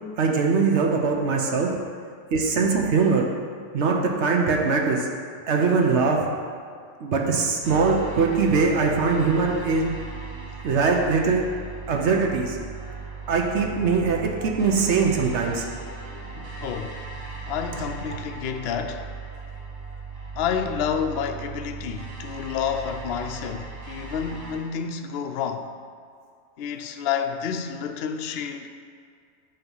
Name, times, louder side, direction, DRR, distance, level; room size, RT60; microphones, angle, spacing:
voice 1, 0.2-1.7 2.3-3.2 3.7-5.0 5.5-6.3 7.0-9.9 10.6-11.4 11.9-12.6 13.3-15.6, right 4 dB, 65° right, 1 dB, 1.1 m, -22 dB
sound 1, 7.6-24.6, right 4 dB, 85° right, 1.4 m, -38 dB
voice 2, 16.4-17.1 17.5-19.1 20.4-25.7 26.6-28.7, left 7 dB, 65° left, 6 dB, 0.7 m, -29 dB
8.8 x 3.0 x 5.4 m, 2.2 s
omnidirectional pair, 1.3 m